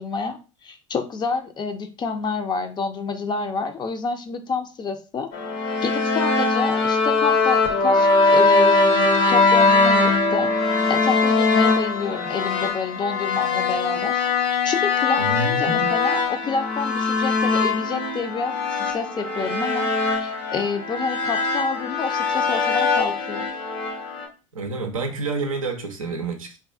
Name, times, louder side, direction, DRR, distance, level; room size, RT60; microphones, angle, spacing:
voice 1, 0.0-5.3 5.8-10.5 10.9-19.9 20.2-23.5, left 4 dB, 25° left, 0.4 m, -28 dB
sound 1, 5.3-24.3, left 3 dB, 60° left, 0.7 m, -21 dB
voice 2, 15.2-15.9 24.5-26.6, right 3 dB, 90° right, 0.4 m, -28 dB
2.4 x 2.2 x 2.4 m
hypercardioid pair, 70°, 17 cm